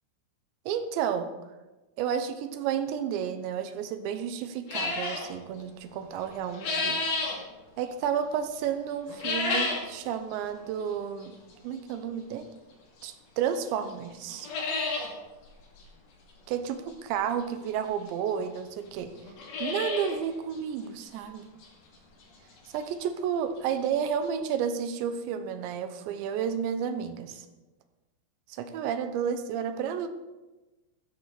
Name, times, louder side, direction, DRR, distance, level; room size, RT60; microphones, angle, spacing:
voice 1, 0.7-1.3 2.0-7.1 7.8-11.4 11.6-12.5 13.0-14.5 16.5-19.1 19.6-21.5 22.7-27.5 28.5-30.1, right 8 dB, 85° right, 9 dB, 3.2 m, -31 dB
sound 1, 4.7-5.3 6.2-7.4 9.1-9.9 10.3-10.4 11.2-11.3 13.0-13.1 13.5-13.6 13.9-14.0 14.3-15.1 15.4-15.5 15.7-15.8 17.4-17.5 18.3-18.4 18.6-18.7 19.2-20.2 20.5-20.6 21.1-21.2 21.6-21.7 23.4-23.5 23.7-23.8 24.2-24.3, left 3 dB, 60° left, 4.3 m, -30 dB
14.5 x 13.5 x 4.1 m, 1.1 s
omnidirectional pair, 5.1 m